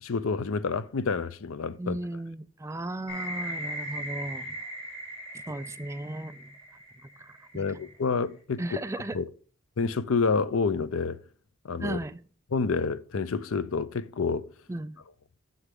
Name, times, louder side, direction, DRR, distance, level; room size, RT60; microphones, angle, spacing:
voice 1, 0.0-2.0 7.5-8.6 9.1-9.3 9.8-11.2 11.6-12.0 12.5-14.5, left 4 dB, 65° left, 0.6 m, -28 dB
voice 2, 1.8-4.6 5.5-6.5 7.0-7.8 8.6-9.2 11.8-12.2 14.7-15.0, right 1 dB, 15° right, 0.3 m, -36 dB
sound 1, 3.1-7.9, right 1 dB, 80° left, 4.4 m, -38 dB
9.9 x 7.2 x 3.6 m
head